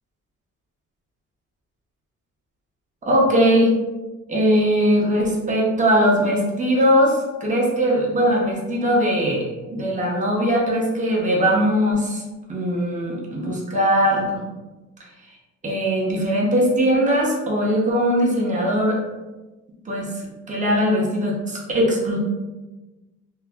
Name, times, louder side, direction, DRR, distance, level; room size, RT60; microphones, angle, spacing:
voice 1, 3.0-3.7 4.3-12.2 12.5-14.4 15.6-19.0 19.9-22.2, equal, 25° right, -3 dB, 0.8 m, -20 dB
2.2 x 2.1 x 3.5 m, 1.1 s
cardioid pair, 90°, 30 cm